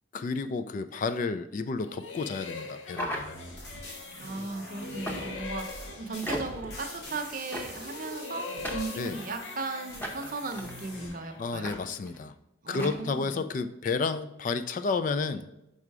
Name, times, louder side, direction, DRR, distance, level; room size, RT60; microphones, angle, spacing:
voice 1, 0.1-3.4 9.0-9.2 11.4-12.3 12.7-15.4, left 4 dB, 40° left, 11 dB, 0.3 m, -31 dB
sound 1, 1.8-4.5 4.8-7.3 7.8-11.5, left 4 dB, 75° left, 0.8 m, -43 dB
sound 2, 2.9-3.8 5.1-5.5 6.2-6.7 7.5-8.0 8.6-9.5 10.0-10.7 11.6-11.8 12.1-12.2 12.7-13.0, equal, 10° left, 0.8 m, -37 dB
sound 3, 3.2-11.1, left 1 dB, 55° left, 2.6 m, -44 dB
voice 2, 4.2-11.7 12.6-13.4, right 3 dB, 45° right, 6 dB, 0.7 m, -37 dB
5.5 x 4.9 x 4.7 m, 0.86 s
head